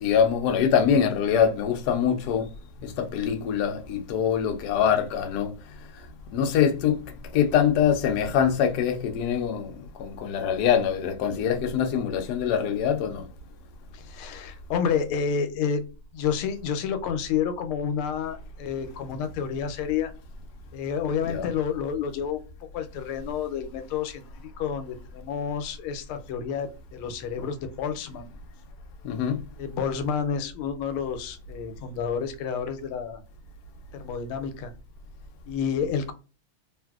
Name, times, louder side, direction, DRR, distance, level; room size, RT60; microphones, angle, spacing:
voice 1, 0.0-2.4 3.0-5.5 6.3-7.0 7.3-9.7 10.0-13.2 21.2-21.5 29.0-29.4, left 8 dB, 75° left, 0.9 m, -24 dB
voice 2, 13.9-15.9 16.1-20.1 20.7-22.4 22.7-24.2 24.6-28.3 29.6-33.2 33.9-34.7 35.5-36.1, left 7 dB, 90° left, 1.4 m, -29 dB
3.5 x 2.5 x 2.3 m
omnidirectional pair, 2.3 m